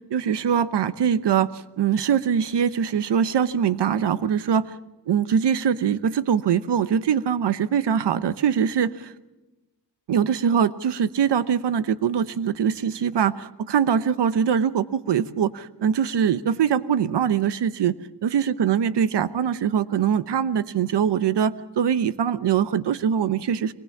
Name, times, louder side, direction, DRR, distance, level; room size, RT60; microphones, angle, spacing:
voice 1, 0.1-4.8 5.1-9.1 10.1-17.9 18.2-23.7, right 8 dB, 85° right, 15 dB, 1.0 m, -22 dB
23.0 x 20.0 x 7.2 m, 1.0 s
wide cardioid pair, 130°, 40 cm